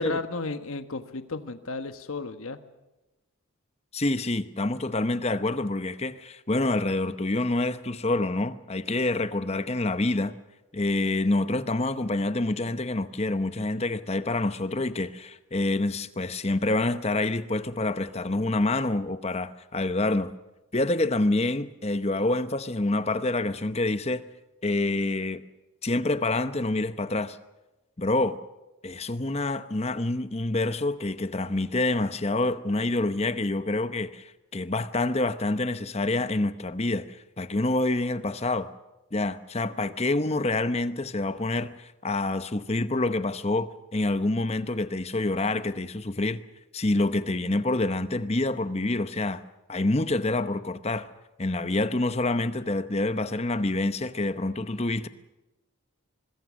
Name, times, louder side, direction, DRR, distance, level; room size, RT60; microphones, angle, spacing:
voice 1, 0.0-2.6, left 3 dB, 70° left, 1.3 m, -33 dB
voice 2, 3.9-10.4 10.7-20.3 20.7-24.2 24.6-25.4 25.8-27.4 28.0-28.4 28.8-38.7 39.1-46.4 46.7-49.4 49.7-51.1 51.4-55.1, left 2 dB, 30° left, 0.9 m, -27 dB
25.0 x 22.0 x 6.4 m
head